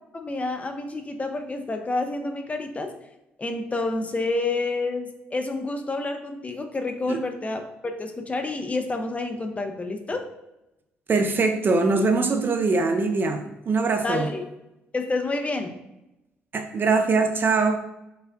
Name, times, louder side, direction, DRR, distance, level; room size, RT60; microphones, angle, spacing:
voice 1, 0.1-2.9 3.4-10.3 14.0-14.4 14.9-15.8, left 2 dB, 25° left, 5 dB, 0.5 m, -29 dB
voice 2, 11.1-14.3 16.5-17.8, right 3 dB, 35° right, 6 dB, 0.4 m, -22 dB
4.9 x 2.1 x 2.4 m, 0.91 s
figure-of-eight pair, 45°, 6 cm